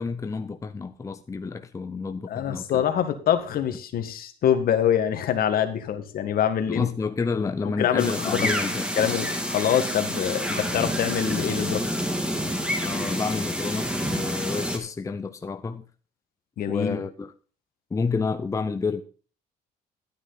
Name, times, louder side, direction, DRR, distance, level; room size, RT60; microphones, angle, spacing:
voice 1, 0.0-2.8 6.7-8.8 12.8-15.8 16.7-17.3 17.9-19.0, left 4 dB, 20° left, 0.7 m, -29 dB
voice 2, 2.3-6.9 7.8-8.5 9.0-11.8 16.6-17.0, left 9 dB, 60° left, 1.7 m, -25 dB
sound 1, 8.0-14.8, equal, 5° right, 2.4 m, -28 dB
12.0 x 9.6 x 4.0 m
cardioid pair, 110°, 17 cm